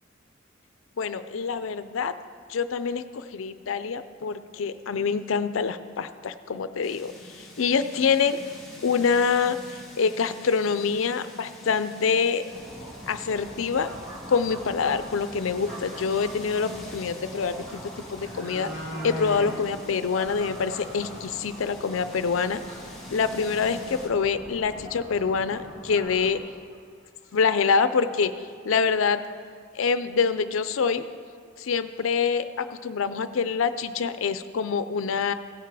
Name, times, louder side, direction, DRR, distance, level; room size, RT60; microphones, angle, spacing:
voice 1, 1.0-2.1 2.5-7.1 7.6-8.4 8.8-9.6 10.0-12.4 13.1-13.9 14.3-17.8 18.1-18.7 19.0-22.6 23.1-26.4 27.3-28.3 28.6-29.2 29.7-31.0 31.6-35.3, left 5 dB, 75° left, 12 dB, 0.5 m, -25 dB
sound 1, 6.8-24.1, left 1 dB, ahead, 1.4 m, -46 dB
sound 2, 9.8-9.9 10.2-10.3 11.3-11.4 11.9-12.2 12.5-12.6 12.9-13.3 14.7-14.8 15.1-15.2 17.5-17.6 18.0-19.6 20.0-20.1 20.5-20.6 20.9-21.0 21.4-21.5 24.3-24.4 24.7-24.9 25.6-25.7 26.1-26.4 26.6-27.4 27.8-27.9, equal, 60° right, 1.7 m, -38 dB
sound 3, 12.5-26.4, equal, 40° right, 2.1 m, -42 dB
16.5 x 5.9 x 4.8 m, 2.1 s
head